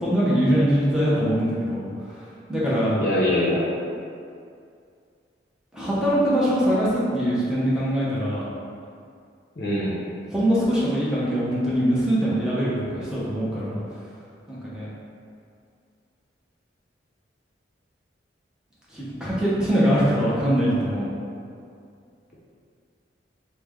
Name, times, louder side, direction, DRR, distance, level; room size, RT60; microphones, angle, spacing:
voice 1, 0.0-1.9 2.5-3.0 5.7-8.5 10.3-13.8 14.5-14.9 18.9-21.1, equal, 5° right, -9 dB, 0.6 m, -22 dB
voice 2, 3.0-3.6 9.6-10.0, left 1 dB, 55° left, -8 dB, 0.6 m, -23 dB
3.2 x 2.1 x 3.5 m, 2.3 s
head